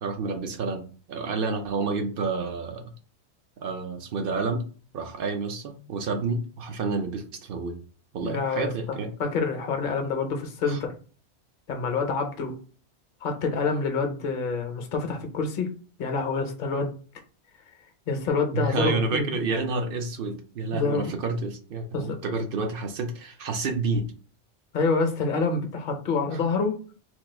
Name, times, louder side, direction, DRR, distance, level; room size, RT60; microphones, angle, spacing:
voice 1, 0.0-2.9 3.6-4.7 4.9-7.8 8.1-9.1 10.7-10.8 18.5-24.1 26.3-26.4, right 3 dB, 60° right, 6 dB, 0.7 m, -29 dB
voice 2, 8.2-10.9 11.7-12.6 13.2-15.7 16.0-16.9 18.1-19.4 20.7-21.1 21.9-22.2 24.7-26.8, left 4 dB, 55° left, 4 dB, 0.7 m, -27 dB
2.9 x 2.3 x 3.2 m, 0.38 s
omnidirectional pair, 1.2 m